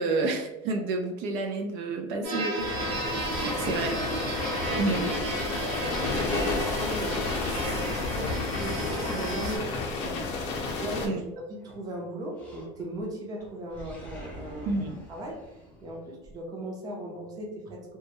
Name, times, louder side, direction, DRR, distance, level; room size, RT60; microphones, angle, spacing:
voice 1, 0.0-3.9 4.8-5.0 11.0-11.2 14.7-15.0, right 3 dB, 75° right, 3 dB, 0.4 m, -30 dB
sound 1, 2.2-9.6, right 2 dB, 50° right, 0.9 m, -33 dB
sound 2, 2.6-11.1, left 3 dB, 50° left, 0.5 m, -31 dB
voice 2, 3.2-3.9 4.5-5.0 5.5-9.7 9.9-15.4 15.8-18.0, right 1 dB, 30° right, -1 dB, 0.6 m, -38 dB
Animal, 11.0-11.8 12.3-13.1 13.4-16.3, equal, 10° left, 0.6 m, -47 dB
2.2 x 2.1 x 2.9 m, 0.95 s
cardioid pair, 160°, 13 cm